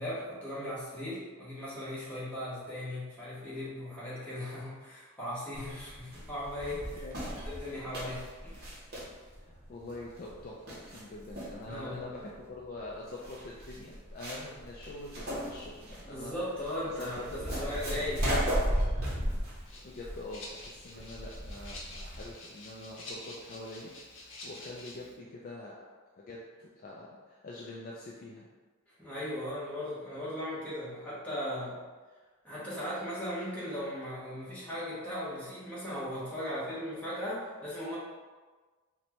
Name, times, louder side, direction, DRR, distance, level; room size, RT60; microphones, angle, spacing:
voice 1, 0.0-8.6 11.7-12.1 16.0-18.5 29.0-31.8 32.4-38.0, left 1 dB, 5° left, -10 dB, 0.9 m, -38 dB
sound 1, 5.5-22.3, equal, 45° right, 0.8 m, -36 dB
voice 2, 6.7-7.4 9.4-16.3 16.8-18.0 19.8-25.8 26.2-28.5, left 2 dB, 40° left, -3 dB, 0.3 m, -45 dB
Rattle (instrument), 19.6-25.1, left 1 dB, 55° left, 0.8 m, -48 dB
4.1 x 2.2 x 2.9 m, 1.4 s
head